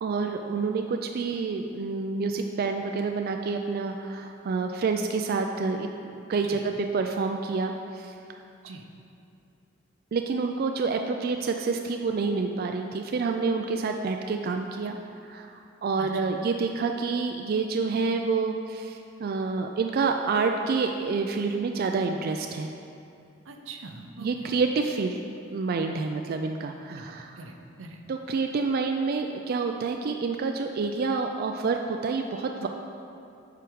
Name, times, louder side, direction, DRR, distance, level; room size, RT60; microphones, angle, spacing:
voice 1, 0.0-8.2 10.1-15.0 15.3-22.7 24.2-25.2 25.5-27.3 28.1-32.7, right 4 dB, 50° right, 4 dB, 0.3 m, -28 dB
voice 2, 16.0-16.3 23.4-24.5 26.9-27.1 27.4-28.0, right 3 dB, 90° right, 4 dB, 0.7 m, -43 dB
8.1 x 5.0 x 4.6 m, 2.6 s
head